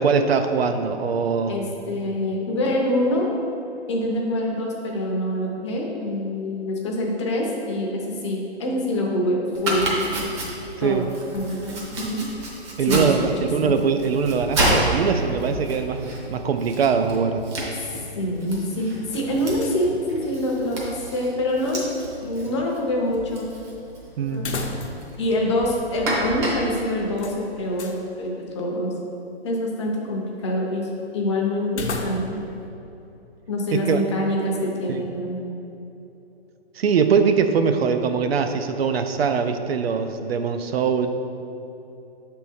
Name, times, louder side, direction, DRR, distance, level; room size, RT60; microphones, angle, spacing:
voice 1, 0.0-1.6 10.8-11.1 12.8-17.4 24.2-24.5 33.7-34.0 34.9-35.0 36.8-41.1, right 6 dB, 65° right, 8 dB, 0.5 m, -22 dB
voice 2, 1.5-3.3 3.9-10.3 10.8-11.1 11.3-12.2 12.9-13.3 13.6-13.7 18.2-21.8 22.2-23.5 24.3-24.6 25.2-28.9 29.4-32.4 33.5-35.4, left 1 dB, 25° left, -1 dB, 0.6 m, -25 dB
Domestic sounds home sounds, 9.5-28.0, right 1 dB, 25° right, 0.8 m, -31 dB
sound 1, 19.1-20.0 20.3-20.4 24.3-25.2 25.5-25.6 27.2-28.0 31.7-32.5, left 3 dB, 90° left, 0.8 m, -33 dB
6.1 x 3.6 x 4.2 m, 2.9 s
hypercardioid pair, 150°, 33 cm